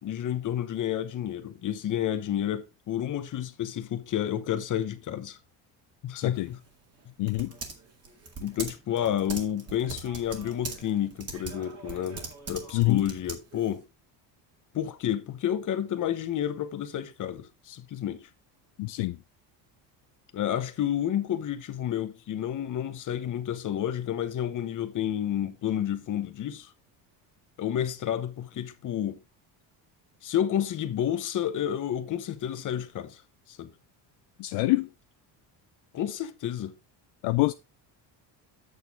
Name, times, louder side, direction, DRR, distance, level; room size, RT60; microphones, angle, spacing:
voice 1, 0.0-5.4 6.0-6.6 8.4-13.8 14.7-18.3 20.3-26.7 27.6-29.2 30.2-33.2 33.5-33.7 35.9-36.7, left 10 dB, 40° left, 1.0 m, -30 dB
voice 2, 6.1-6.5 7.2-7.5 12.7-13.0 18.8-19.2 34.4-34.9 37.2-37.5, left 20 dB, 65° left, 0.5 m, -25 dB
Typing, 6.3-13.8, right 4 dB, 30° right, 2.0 m, -42 dB
8.4 x 6.5 x 3.5 m
cardioid pair, 135°, 46 cm